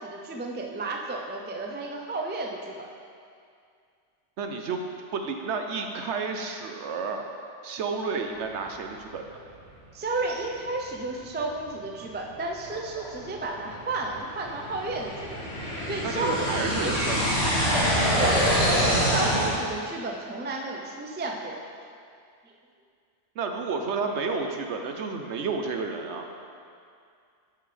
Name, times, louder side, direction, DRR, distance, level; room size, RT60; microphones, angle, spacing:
voice 1, 0.0-2.9 9.9-15.4 15.9-17.2 17.7-21.6, right 2 dB, 15° right, 1 dB, 0.3 m, -32 dB
voice 2, 4.4-4.8 5.1-7.3 7.6-9.2 16.0-17.3 23.4-26.3, right 4 dB, 70° right, 4 dB, 0.9 m, -31 dB
sound 1, 10.7-10.8 11.4-11.5 12.1-19.5, equal, 55° left, 2.2 m, -26 dB
11.5 x 5.7 x 3.3 m, 2.3 s
omnidirectional pair, 1.3 m